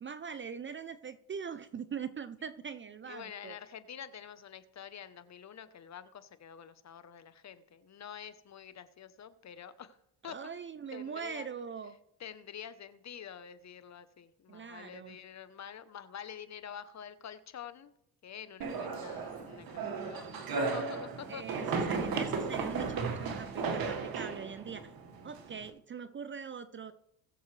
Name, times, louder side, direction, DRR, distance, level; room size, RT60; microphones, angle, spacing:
voice 1, 0.0-3.6 10.3-12.0 14.5-15.2 21.3-24.9 25.2-26.9, right 6 dB, 25° right, 13 dB, 0.5 m, -42 dB
voice 2, 3.1-10.0 10.2-10.4 10.9-11.5 12.2-17.9 18.2-21.6, left 8 dB, 35° left, 13 dB, 0.9 m, -47 dB
sound 1, 18.6-25.7, right 4 dB, 50° right, 1.8 m, -35 dB
20.0 x 7.0 x 3.3 m, 0.79 s
supercardioid pair, 95°, 46 cm